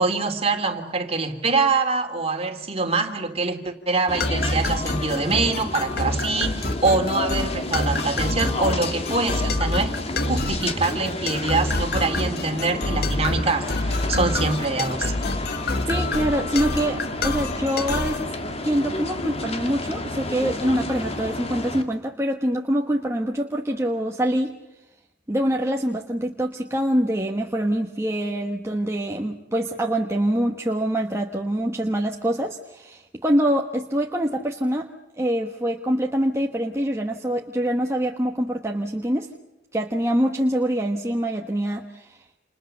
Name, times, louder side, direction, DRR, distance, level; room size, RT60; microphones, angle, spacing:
voice 1, 0.0-15.1, right 3 dB, 35° right, 5 dB, 3.1 m, -24 dB
sound 1, 4.1-21.8, left 2 dB, 35° left, 2.4 m, -31 dB
sound 2, 4.2-18.3, left 2 dB, 60° left, 1.3 m, -27 dB
voice 2, 15.9-18.3 18.6-24.5 25.3-34.9 35.2-39.3 39.7-42.2, equal, 15° right, 1 dB, 1.4 m, -25 dB
29.0 x 28.5 x 6.8 m, 0.92 s
head